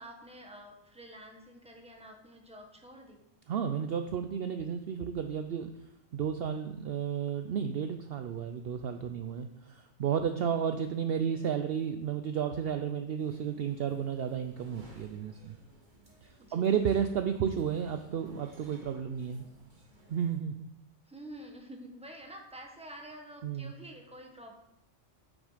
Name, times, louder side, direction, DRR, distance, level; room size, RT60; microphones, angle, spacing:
voice 1, 0.0-3.2 11.3-11.6 16.4-16.7 21.1-24.5, right 1 dB, 5° right, 1 dB, 1.2 m, -48 dB
voice 2, 3.5-5.7 6.1-15.6 16.5-19.5 20.1-20.7 23.4-23.7, right 8 dB, 60° right, 7 dB, 0.7 m, -32 dB
sound 1, 13.2-20.4, right 1 dB, 40° right, 1.6 m, -58 dB
8.6 x 6.3 x 5.0 m, 0.83 s
omnidirectional pair, 1.3 m